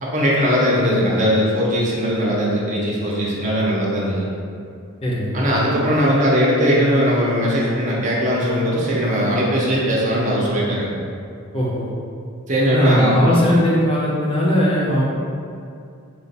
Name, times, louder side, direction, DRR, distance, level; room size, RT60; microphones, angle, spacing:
voice 1, 0.0-4.3 5.3-10.9 12.5-13.1, equal, 35° right, -5 dB, 0.6 m, -19 dB
voice 2, 5.0-5.4 11.5-11.9 12.7-15.0, equal, 25° left, -6 dB, 0.6 m, -19 dB
4.4 x 2.5 x 4.0 m, 2.4 s
head